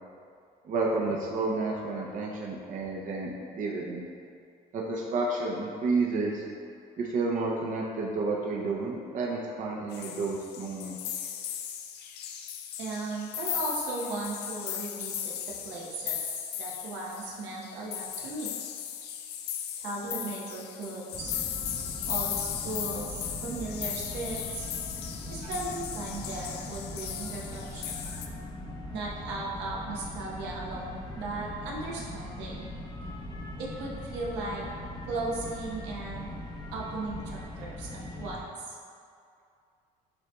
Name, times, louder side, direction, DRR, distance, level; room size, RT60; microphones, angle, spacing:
voice 1, 0.6-4.0 4.7-6.4 7.0-11.0 28.1-28.2, right 3 dB, 50° right, -2 dB, 0.6 m, -30 dB
sound 1, 9.9-28.3, left 9 dB, 70° left, 0.4 m, -37 dB
voice 2, 12.8-16.2 16.6-18.5 19.8-21.3 22.0-24.7 25.3-27.8 28.9-32.7 33.6-34.6 35.0-36.3 36.7-38.4 38.6-38.8, right 2 dB, 85° right, -4 dB, 0.9 m, -36 dB
sound 2, 21.1-38.4, left 1 dB, 25° left, 0.6 m, -40 dB
7.6 x 2.8 x 2.3 m, 2.4 s
cardioid pair, 95°, 17 cm